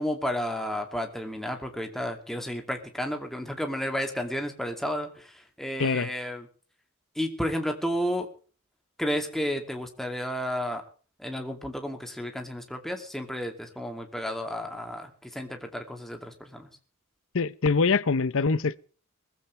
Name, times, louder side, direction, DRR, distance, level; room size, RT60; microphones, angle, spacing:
voice 1, 0.0-6.5 7.2-8.3 9.0-10.8 11.2-16.7, equal, ahead, 2.6 m, -32 dB
voice 2, 5.8-6.1 17.3-18.8, left 4 dB, 65° left, 0.8 m, -24 dB
21.0 x 15.0 x 3.4 m
head